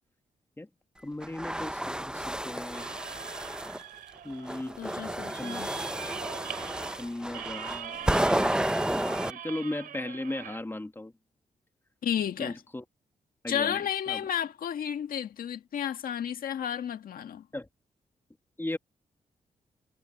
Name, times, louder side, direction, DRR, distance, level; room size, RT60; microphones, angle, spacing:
voice 1, 1.0-2.9 4.2-4.8 5.4-5.7 7.0-8.5 8.9-11.1 12.4-12.8 13.4-14.2 17.5-17.7 18.6-18.8, left 1 dB, 15° left, 2.4 m, -37 dB
sound 1, 1.2-3.8 4.4-9.3, right 1 dB, 5° right, 0.8 m, -31 dB
sound 2, 2.7-10.6, right 10 dB, 80° right, 3.1 m, -42 dB
voice 2, 4.8-5.7 12.0-12.6 13.5-17.4, left 9 dB, 75° left, 1.8 m, -32 dB
cardioid pair, 55°, 15 cm